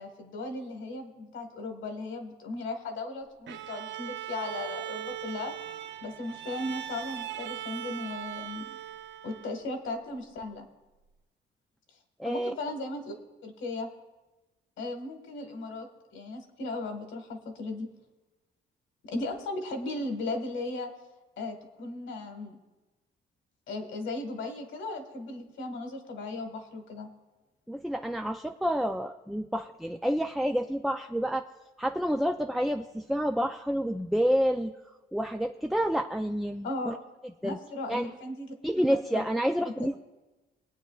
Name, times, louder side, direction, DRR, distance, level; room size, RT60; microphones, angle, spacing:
voice 1, 0.0-5.5 6.0-8.8 9.2-10.7 12.2-13.1 13.4-13.9 14.8-15.9 16.1-17.9 19.0-20.9 21.4-22.6 23.7-27.1 36.6-36.9 37.4-39.2 39.8-39.9, left 2 dB, 75° left, 5 dB, 1.6 m, -36 dB
Bowed string instrument, 3.5-9.8, right 12 dB, 65° right, 0.5 m, -39 dB
voice 2, 12.2-12.5 27.7-31.5 31.8-34.7 35.1-37.0 37.4-37.6 37.9-38.1 38.6-40.0, equal, ahead, 5 dB, 0.3 m, -29 dB
21.5 x 8.9 x 2.4 m, 1.1 s
cardioid pair, 90°, 20 cm